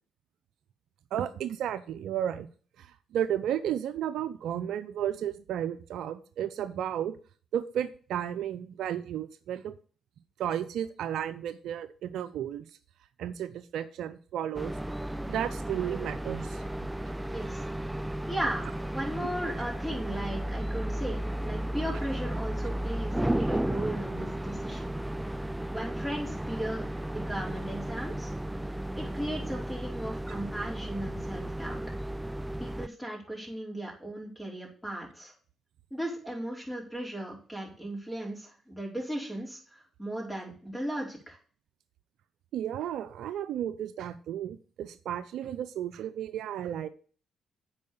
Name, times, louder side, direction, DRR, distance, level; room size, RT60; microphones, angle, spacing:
voice 1, 1.1-2.5 2.8-2.9 3.1-7.2 7.5-9.8 10.4-12.6 13.2-14.7 15.3-16.6 42.5-46.9, right 10 dB, 75° right, 13 dB, 0.5 m, -33 dB
sound 1, 14.5-32.9, right 1 dB, 10° right, 0.3 m, -34 dB
voice 2, 17.3-17.6 18.3-24.9 25.7-28.3 28.9-31.8 32.6-35.3 35.9-41.4, right 1 dB, 10° left, -1 dB, 4.5 m, -36 dB
8.4 x 4.8 x 6.6 m, 0.42 s
supercardioid pair, 55°, 0 cm